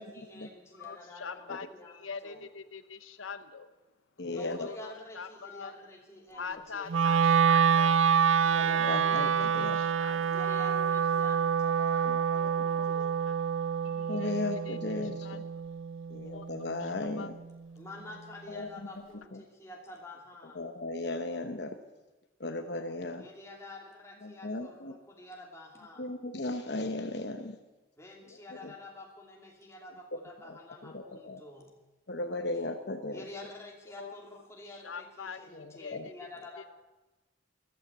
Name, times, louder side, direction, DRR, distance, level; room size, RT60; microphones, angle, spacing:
voice 1, 0.0-2.5 4.2-7.0 10.3-13.3 17.8-20.7 23.1-26.1 28.0-31.8 33.1-36.7, left 2 dB, 15° left, 0 dB, 2.7 m, -48 dB
voice 2, 0.7-1.7 1.9-3.7 4.2-5.7 6.3-8.0 8.5-11.3 12.3-12.9 13.3-13.4 13.8-15.0 15.2-15.4 16.2-16.5 16.8-17.3 34.0-34.2 34.7-35.4 35.8-36.3, left 5 dB, 85° left, 11 dB, 0.8 m, -44 dB
voice 3, 4.2-4.7 8.4-9.8 12.0-12.2 13.9-15.4 16.1-17.3 18.5-18.7 19.3-19.4 20.5-21.8 22.4-23.3 24.2-25.0 26.0-27.6 28.6-28.7 30.4-30.6 30.8-31.4 32.1-33.2 35.5-36.1, left 2 dB, 55° left, 6 dB, 0.9 m, -36 dB
Wind instrument woodwind instrument, 6.9-17.1, right 7 dB, 80° right, 0.5 m, -27 dB
14.0 x 13.0 x 8.1 m, 1.1 s
head